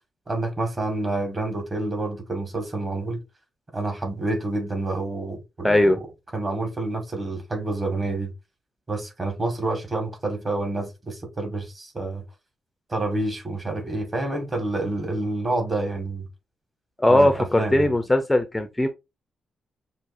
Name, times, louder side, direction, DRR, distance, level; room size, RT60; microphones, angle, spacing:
voice 1, 0.3-3.2 3.7-6.0 6.3-8.3 8.9-12.2 12.9-16.3 17.1-17.3 17.6-17.9, right 2 dB, 30° right, 1.7 m, -28 dB
voice 2, 5.6-6.0 17.0-18.9, left 1 dB, 10° left, 0.5 m, -19 dB
6.0 x 2.7 x 2.6 m
cardioid pair, 95°, 0 cm